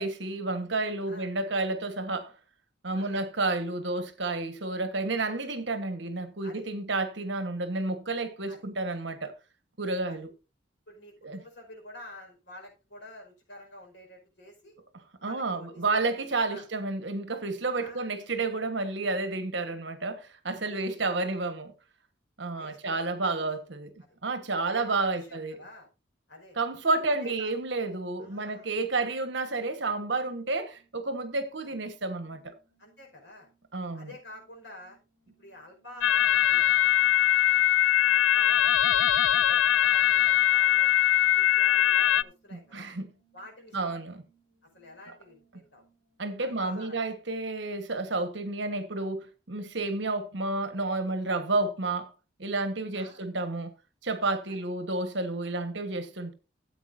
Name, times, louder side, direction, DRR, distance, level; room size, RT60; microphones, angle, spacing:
voice 1, 0.0-2.3 2.8-9.3 9.8-10.3 11.2-11.4 15.2-21.7 22.4-23.9 24.2-25.6 26.6-32.5 33.7-34.1 42.5-43.1 43.7-44.1 46.2-52.1 52.4-53.7 54.0-56.3, right 3 dB, 60° right, 1.3 m, -30 dB
voice 2, 10.9-14.7 15.2-15.9 16.5-16.7 17.8-18.1 20.6-21.4 22.6-23.5 24.5-25.9 26.3-26.6 27.2-27.5 28.2-28.8 32.8-33.5 33.9-35.0 35.4-37.7 38.0-40.9 41.3-42.9 43.3-44.0 44.7-45.8 46.4-47.0 52.9-53.2 54.5-54.6, left 1 dB, 60° left, 5.0 m, -49 dB
sound 1, 30.5-46.5, right 6 dB, 40° left, 5.4 m, -69 dB
sound 2, 36.0-42.2, left 11 dB, 80° left, 0.4 m, -22 dB
14.0 x 8.2 x 2.6 m
head